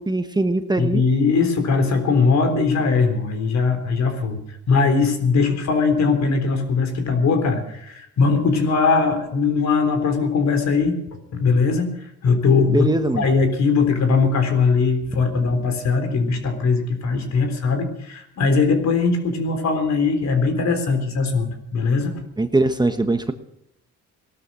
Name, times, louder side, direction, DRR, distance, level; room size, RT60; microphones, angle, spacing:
voice 1, 0.0-1.0 12.7-13.2 22.4-23.3, right 2 dB, 15° right, 8 dB, 1.2 m, -21 dB
voice 2, 0.8-11.0 11.3-12.9 13.1-22.2, left 4 dB, 60° left, 6 dB, 3.8 m, -20 dB
18.5 x 12.5 x 6.2 m, 0.79 s
cardioid pair, 90°, 30 cm